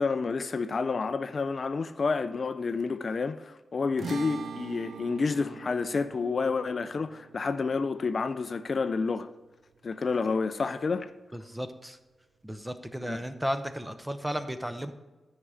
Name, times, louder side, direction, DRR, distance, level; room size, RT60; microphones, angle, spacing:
voice 1, 0.0-9.3 9.8-11.1 13.0-13.2, left 4 dB, 40° left, 0.3 m, -29 dB
sound 1, 4.0-10.5, right 5 dB, 70° right, 0.6 m, -44 dB
voice 2, 11.3-12.0 12.4-14.9, equal, 5° right, 0.6 m, -34 dB
12.5 x 4.9 x 5.5 m
wide cardioid pair, 140°, 0 cm